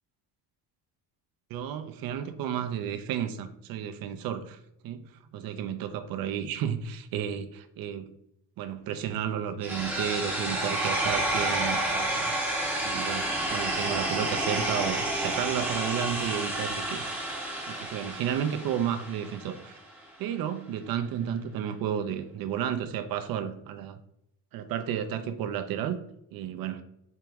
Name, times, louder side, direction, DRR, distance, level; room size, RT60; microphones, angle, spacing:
voice 1, 1.5-4.6 4.8-5.1 5.3-8.1 8.6-12.3 12.8-17.1 17.7-19.8 20.2-24.0 24.5-26.0 26.3-26.8, right 9 dB, 60° right, 0.5 m, -32 dB
sound 1, 9.6-19.6, right 1 dB, 5° right, 0.7 m, -30 dB
4.6 x 2.9 x 3.5 m
cardioid pair, 165°, 41 cm